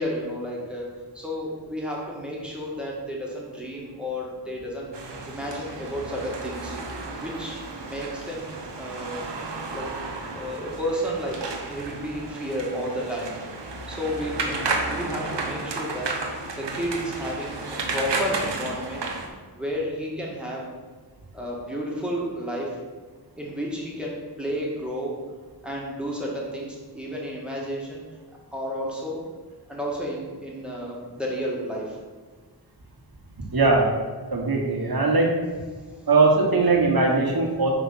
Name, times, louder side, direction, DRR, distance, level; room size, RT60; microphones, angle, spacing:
voice 1, 0.0-6.8 7.2-8.5 8.8-9.3 9.7-9.9 10.2-13.4 13.9-16.2 16.6-19.1 19.5-20.7 21.3-22.8 23.4-25.2 25.6-28.0 28.5-29.2 29.7-32.0 35.9-36.1, equal, ahead, -3 dB, 2.0 m, -32 dB
sound 1, 4.9-19.3, right 3 dB, 85° right, 0.9 m, -33 dB
voice 2, 33.5-33.9 34.3-35.3 36.1-37.7, right 3 dB, 60° right, 0 dB, 1.5 m, -20 dB
5.0 x 4.6 x 5.8 m, 1.4 s
cardioid pair, 40°, 41 cm